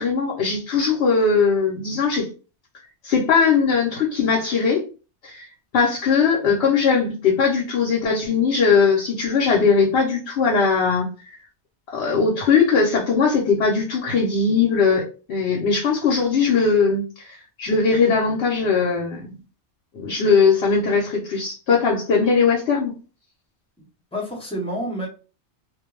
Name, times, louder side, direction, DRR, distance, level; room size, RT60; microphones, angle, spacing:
voice 1, 0.0-2.3 3.0-4.8 5.2-5.5 5.7-11.1 11.9-19.3 19.9-22.9, left 5 dB, 70° left, 0.9 m, -20 dB
voice 2, 23.8-25.1, equal, 5° left, 0.8 m, -29 dB
2.4 x 2.2 x 3.1 m
omnidirectional pair, 1.1 m